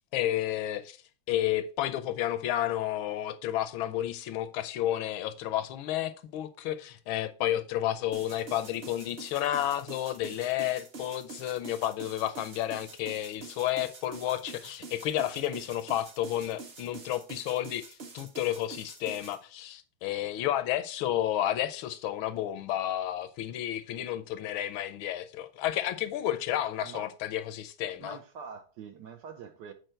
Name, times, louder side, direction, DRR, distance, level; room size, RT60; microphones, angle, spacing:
voice 1, 0.1-1.0 1.3-28.2, left 12 dB, 75° left, 1.3 m, -31 dB
sound 1, 8.1-19.4, right 4 dB, 40° right, 0.8 m, -46 dB
voice 2, 26.8-27.1 28.0-29.7, right 6 dB, 65° right, 1.2 m, -44 dB
7.9 x 4.8 x 4.4 m
omnidirectional pair, 2.4 m